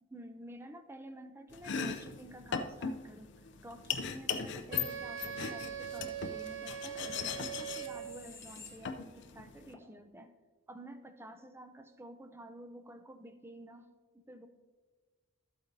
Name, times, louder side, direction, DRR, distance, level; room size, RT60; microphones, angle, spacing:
voice 1, 0.1-10.3 10.7-13.9 14.1-14.5, right 1 dB, 10° right, 8 dB, 0.5 m, -51 dB
Domestic sounds home sounds, 1.5-9.7, left 6 dB, 55° left, 0.5 m, -39 dB
Wind instrument woodwind instrument, 4.7-8.3, right 8 dB, 65° right, 0.4 m, -42 dB
sound 1, 6.4-9.3 9.7-9.9, left 4 dB, 15° left, 0.9 m, -55 dB
12.5 x 8.4 x 2.7 m, 1.3 s
head